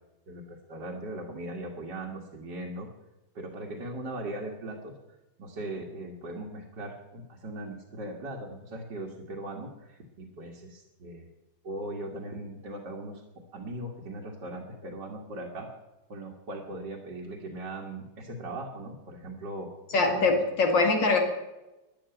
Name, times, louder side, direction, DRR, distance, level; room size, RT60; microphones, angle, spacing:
voice 1, 0.3-2.9 3.4-4.9 5.4-11.3 11.6-13.2 13.5-15.7 16.1-20.3, right 1 dB, 65° right, -2 dB, 2.4 m, -39 dB
voice 2, 19.9-21.2, left 3 dB, 70° left, 3 dB, 2.8 m, -23 dB
13.0 x 10.5 x 9.0 m, 1.0 s
omnidirectional pair, 2.1 m